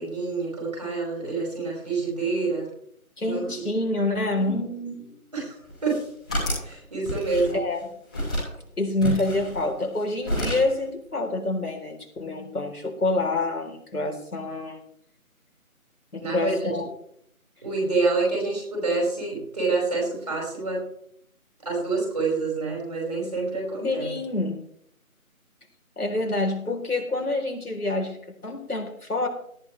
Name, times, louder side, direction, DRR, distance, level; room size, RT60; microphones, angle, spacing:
voice 1, 0.0-2.7 3.2-3.7 4.4-4.5 5.3-6.0 6.6-7.6 16.2-16.8 17.6-20.9 21.6-24.1, right 3 dB, 25° right, -3 dB, 5.2 m, -27 dB
voice 2, 3.2-5.2 7.5-7.8 8.8-14.8 16.1-16.9 23.8-24.6 26.0-28.2 28.4-29.3, left 2 dB, 90° left, 2 dB, 4.1 m, -27 dB
sound 1, 5.6-6.7 7.0-7.8 8.1-8.5 9.0-10.0 10.2-10.8, equal, 5° left, 2.5 m, -29 dB
18.0 x 12.0 x 3.4 m, 0.69 s
figure-of-eight pair, 175°, 44 cm